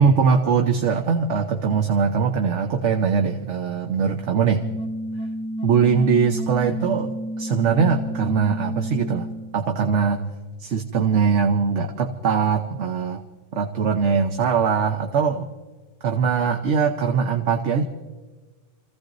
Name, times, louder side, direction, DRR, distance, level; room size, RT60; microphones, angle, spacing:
voice 1, 0.0-4.6 5.6-10.2 10.6-13.2 13.6-15.5 16.0-17.8, right 6 dB, 75° right, 5 dB, 1.2 m, -21 dB
sound 1, 4.6-9.6, equal, 5° left, 0.5 m, -31 dB
29.0 x 16.0 x 2.6 m, 1.3 s
omnidirectional pair, 1.2 m